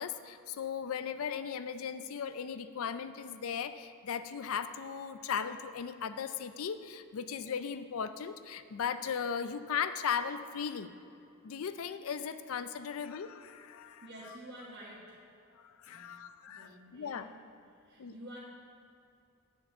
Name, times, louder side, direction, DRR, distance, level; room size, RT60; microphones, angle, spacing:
voice 1, 0.0-10.9 11.4-14.4 15.6-17.3 18.0-18.1, left 7 dB, 70° left, 11 dB, 0.4 m, -37 dB
voice 2, 14.0-15.2 15.9-17.3 17.8-18.4, right 1 dB, 50° right, -7 dB, 1.4 m, -50 dB
7.3 x 7.2 x 7.9 m, 2.6 s
head